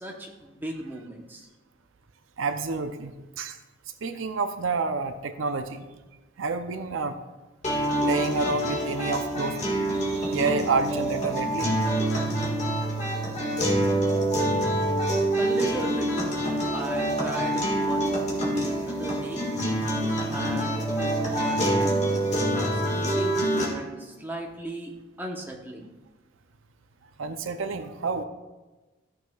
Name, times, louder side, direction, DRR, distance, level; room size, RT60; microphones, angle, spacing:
voice 1, 0.0-1.5 15.4-16.3 16.7-19.5 20.3-22.0 22.5-25.9, equal, 10° right, -1 dB, 0.9 m, -36 dB
voice 2, 2.4-3.6 4.0-5.8 6.4-7.2 8.0-9.6 9.9-11.8 15.0-15.1 27.2-28.2, right 4 dB, 75° right, 9 dB, 0.5 m, -29 dB
sound 1, 7.6-23.7, right 1 dB, 35° left, 1.7 m, -26 dB
13.5 x 6.4 x 2.3 m, 1.2 s
head